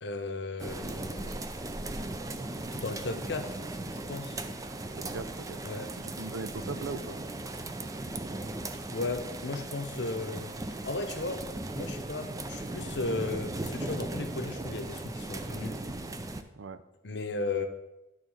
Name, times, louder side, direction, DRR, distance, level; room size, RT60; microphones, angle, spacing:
voice 1, 0.0-1.4 2.7-3.6 4.1-4.4 5.6-5.9 8.9-11.5 11.7-15.8 17.0-17.7, left 3 dB, 60° left, 7 dB, 0.8 m, -35 dB
sound 1, 0.6-16.4, right 2 dB, 20° right, 0.4 m, -38 dB
voice 2, 5.0-5.6 6.0-7.2 16.5-16.8, right 4 dB, 90° right, 11 dB, 0.6 m, -39 dB
10.5 x 4.0 x 6.2 m, 0.97 s
head